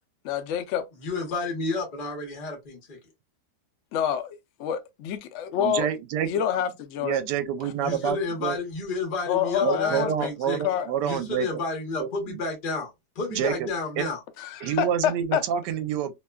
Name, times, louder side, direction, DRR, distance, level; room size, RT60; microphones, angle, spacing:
voice 1, 0.2-0.9 3.9-4.4 4.6-5.9 6.3-7.2 7.6-7.7 9.3-10.3 10.6-10.9 14.4-15.4, left 9 dB, 85° left, 0.6 m, -27 dB
voice 2, 1.0-3.0 7.8-10.6 11.1-14.2, left 3 dB, 40° left, 0.9 m, -31 dB
voice 3, 5.6-6.3 7.0-8.6 9.6-11.6 12.0-12.4 13.3-13.7 14.0-14.1 14.6-16.1, right 9 dB, 85° right, 1.2 m, -28 dB
2.9 x 2.2 x 2.2 m
omnidirectional pair, 1.8 m